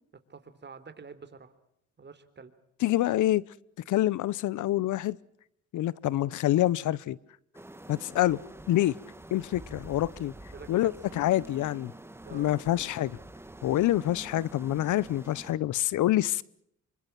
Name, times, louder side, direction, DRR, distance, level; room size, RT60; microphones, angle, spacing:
voice 1, 0.3-1.5 2.0-2.5 10.5-10.9 12.2-12.5, right 5 dB, 35° right, 3.8 m, -47 dB
voice 2, 2.8-3.4 3.9-5.2 5.7-7.2 7.9-8.4 8.7-9.0 9.3-10.3 10.7-11.9 12.3-13.2 13.6-16.4, left 14 dB, 80° left, 0.9 m, -26 dB
sound 1, 7.5-15.5, right 1 dB, 10° right, 1.8 m, -47 dB
27.5 x 25.0 x 6.0 m
cardioid pair, 90°, 30 cm